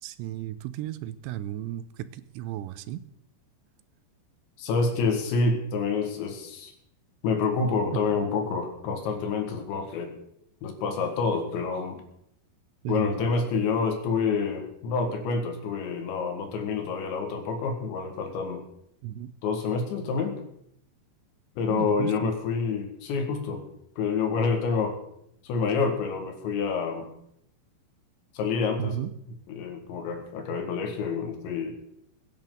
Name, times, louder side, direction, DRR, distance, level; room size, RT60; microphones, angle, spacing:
voice 1, 0.0-3.0 7.9-8.0 12.8-13.3 19.0-19.3 21.7-22.3 28.8-29.1, right 12 dB, 85° right, 14 dB, 2.9 m, -34 dB
voice 2, 4.6-6.7 7.2-10.2 10.6-12.0 12.9-18.6 19.4-20.4 21.6-23.6 24.0-25.0 25.4-27.1 28.3-29.0 29.5-31.7, left 4 dB, 80° left, 4 dB, 4.2 m, -28 dB
22.0 x 10.0 x 3.9 m, 0.75 s
omnidirectional pair, 5.1 m